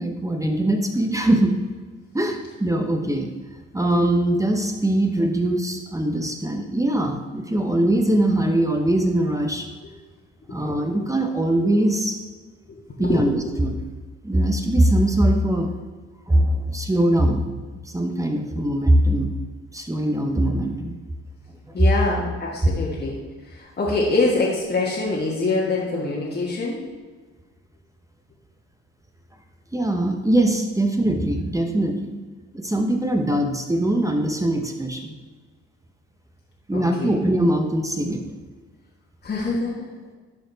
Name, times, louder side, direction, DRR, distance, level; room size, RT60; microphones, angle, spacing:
voice 1, 0.0-1.5 2.1-3.3 3.7-9.7 10.5-12.1 13.0-13.8 14.2-15.7 16.3-17.5 17.9-19.3 19.7-20.9 21.7-21.8 29.7-32.2 32.5-35.1 36.7-38.2, right 1 dB, 10° right, 3 dB, 0.9 m, -21 dB
voice 2, 12.7-13.5 21.7-26.8 36.7-37.2 39.2-39.9, left 3 dB, 35° left, -4 dB, 1.6 m, -25 dB
11.5 x 4.2 x 4.0 m, 1.4 s
cardioid pair, 90°, 30 cm